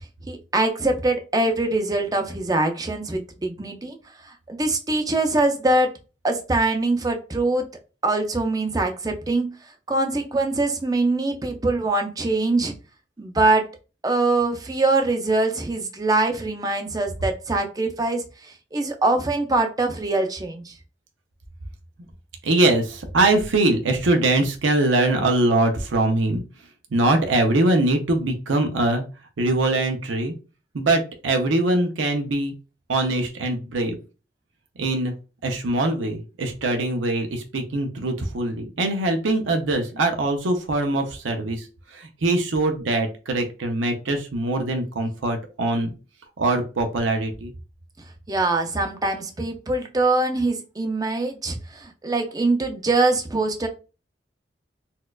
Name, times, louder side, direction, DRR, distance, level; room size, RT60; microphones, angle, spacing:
voice 1, 0.3-4.0 4.5-5.9 6.2-7.7 8.0-9.5 9.9-12.7 13.2-13.7 14.0-20.7 48.3-53.7, right 2 dB, 20° right, 5 dB, 0.4 m, -23 dB
voice 2, 22.4-26.4 26.9-29.0 29.4-30.3 30.7-32.5 32.9-34.0 34.8-35.1 35.4-41.6 41.9-45.9 46.4-47.5, right 2 dB, 90° right, 4 dB, 0.6 m, -22 dB
4.2 x 2.3 x 2.3 m, 0.32 s
head